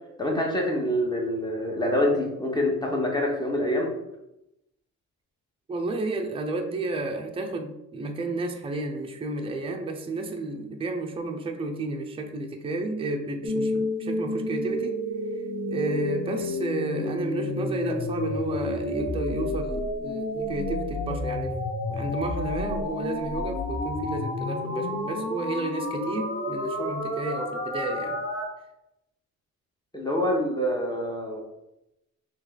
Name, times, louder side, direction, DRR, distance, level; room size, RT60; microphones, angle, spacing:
voice 1, 0.2-3.9 29.9-31.4, left 1 dB, 15° left, 0 dB, 1.0 m, -26 dB
voice 2, 5.7-15.0 15.7-21.5 21.9-28.2, right 2 dB, 20° right, 3 dB, 0.5 m, -32 dB
sound 1, 13.4-28.4, left 1 dB, 75° left, 1.2 m, -30 dB
3.1 x 3.0 x 3.8 m, 0.90 s
cardioid pair, 90°, 30 cm